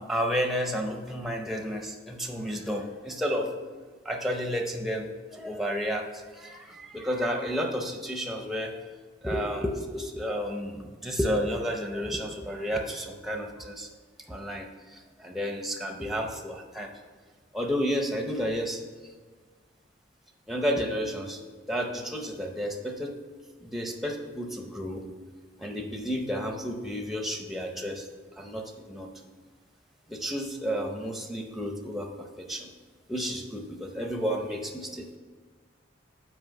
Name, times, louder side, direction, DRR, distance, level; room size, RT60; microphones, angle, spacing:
voice 1, 0.0-3.5 4.0-8.9 9.2-13.9 14.3-16.9 17.5-18.8 20.5-21.4 21.7-23.1 23.6-25.1 25.6-28.1 28.4-29.1 30.1-32.7 33.1-35.1, equal, ahead, 3 dB, 0.6 m, -31 dB
6.1 x 4.8 x 5.7 m, 1.5 s
head